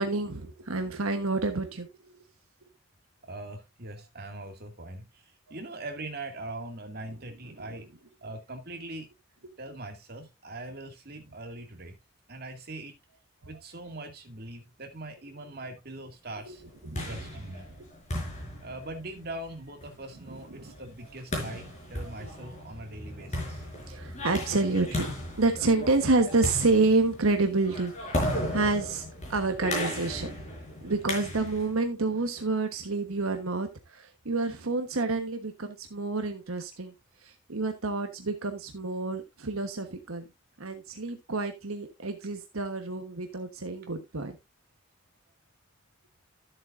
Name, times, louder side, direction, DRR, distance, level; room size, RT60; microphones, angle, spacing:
voice 1, 0.0-1.9 5.5-5.6 7.0-7.1 7.4-7.9 9.4-9.5 13.4-13.5 16.4-16.6 16.8-17.6 20.3-21.1 22.0-22.1 23.9-25.1 25.4-29.0 29.3-30.3 30.8-36.9 37.2-40.2 40.6-44.4, right 3 dB, 80° right, 1.2 m, -29 dB
voice 2, 3.2-7.9 8.2-9.1 9.6-11.9 12.3-13.0 13.5-16.6 17.0-17.7 18.6-23.6, right 2 dB, 45° right, 2.2 m, -41 dB
sound 1, 16.6-31.8, left 1 dB, 35° left, 5.0 m, -36 dB
13.5 x 7.8 x 2.6 m
head